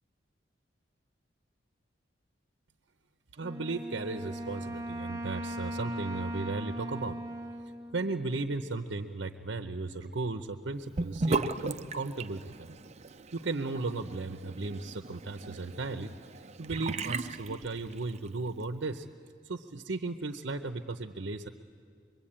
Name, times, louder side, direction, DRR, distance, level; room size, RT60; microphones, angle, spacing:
voice 1, 3.3-7.2 7.9-12.7 13.3-16.1 16.6-19.1 19.4-21.5, right 3 dB, 75° right, 7 dB, 0.8 m, -35 dB
Wind instrument woodwind instrument, 3.4-8.9, equal, 20° right, 1.0 m, -39 dB
Sink (filling or washing) / Bathtub (filling or washing), 11.0-18.3, right 3 dB, 35° right, 0.6 m, -37 dB
25.0 x 22.0 x 8.8 m, 2.3 s
head